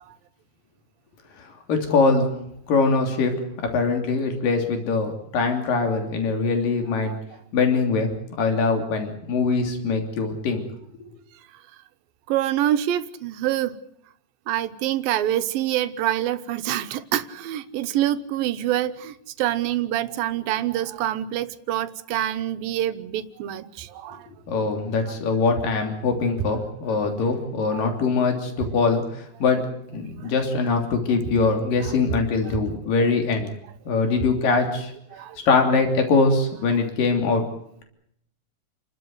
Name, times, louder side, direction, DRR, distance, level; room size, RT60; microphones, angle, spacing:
voice 1, 1.4-2.3 2.7-3.3 3.6-7.2 7.5-8.1 8.4-10.6 24.5-29.6 29.9-33.5 33.9-34.9 35.5-37.4, left 4 dB, 75° left, 4.8 m, -22 dB
voice 2, 12.3-13.8 14.5-24.3 27.7-27.9 32.5-32.6 35.1-35.4, right 12 dB, 85° right, 2.8 m, -26 dB
29.5 x 12.5 x 9.5 m
omnidirectional pair, 4.0 m